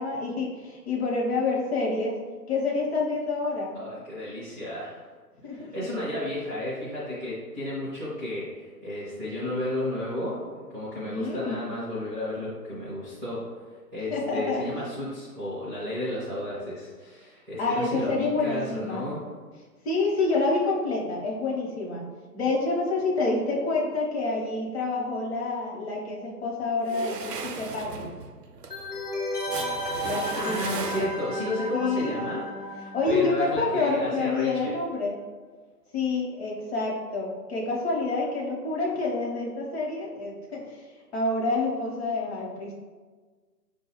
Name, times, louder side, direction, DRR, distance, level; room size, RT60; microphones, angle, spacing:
voice 1, 0.0-2.2 2.5-3.8 5.4-6.0 11.0-11.7 14.1-14.6 17.6-19.1 19.8-22.0 22.3-28.1 30.0-30.6 31.7-32.1 32.8-35.2 35.9-42.7, left 3 dB, 45° left, -3 dB, 1.0 m, -28 dB
voice 2, 3.7-5.1 5.5-13.4 13.9-19.2 30.4-34.7, left 1 dB, 10° right, -12 dB, 0.4 m, -33 dB
sound 1, 26.8-31.5, right 5 dB, 80° right, 0.5 m, -36 dB
sound 2, 28.7-34.2 34.4-34.5, left 1 dB, 80° left, 1.1 m, -34 dB
5.1 x 2.3 x 3.0 m, 1.4 s
figure-of-eight pair, 130°, 47 cm